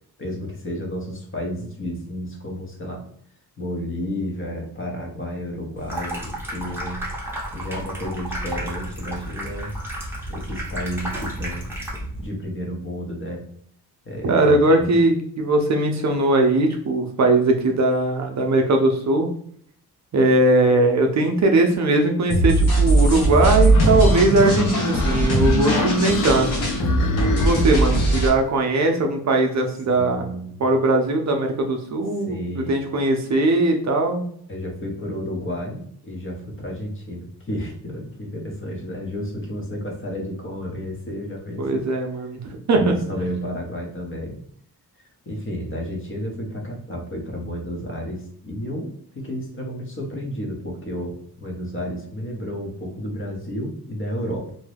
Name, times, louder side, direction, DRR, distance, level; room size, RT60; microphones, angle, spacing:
voice 1, 0.2-3.0 3.6-7.0 7.5-9.7 10.3-11.7 12.2-13.4 14.0-14.9 27.8-28.0 29.9-30.6 32.3-32.8 34.5-41.8 42.7-44.4 45.2-54.5, equal, 35° left, 0 dB, 0.9 m, -31 dB
Water tap faucet / Sink (filling or washing), 5.8-12.2, right 1 dB, 5° right, 0.8 m, -32 dB
voice 2, 14.2-19.3 20.1-26.6 27.3-30.3 30.6-34.3 41.6-42.9, right 2 dB, 45° right, 3 dB, 0.5 m, -20 dB
sound 1, 22.3-28.3, right 1 dB, 80° left, 1.0 m, -20 dB
sound 2, 23.4-28.2, left 4 dB, 55° left, 0.5 m, -27 dB
2.7 x 2.2 x 3.3 m, 0.63 s
cardioid pair, 105°, 38 cm